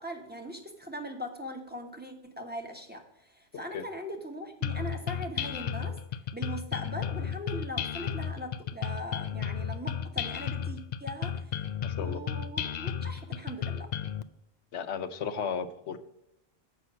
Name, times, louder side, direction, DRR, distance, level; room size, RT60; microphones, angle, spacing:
voice 1, 0.0-6.0 6.3-11.6 12.0-13.9, equal, 10° right, 3 dB, 1.1 m, -40 dB
sound 1, 4.6-14.2, left 8 dB, 55° left, 0.5 m, -33 dB
voice 2, 11.8-12.2 14.7-16.0, left 6 dB, 80° left, 11 dB, 1.0 m, -34 dB
8.0 x 5.8 x 6.0 m, 0.85 s
omnidirectional pair, 1.1 m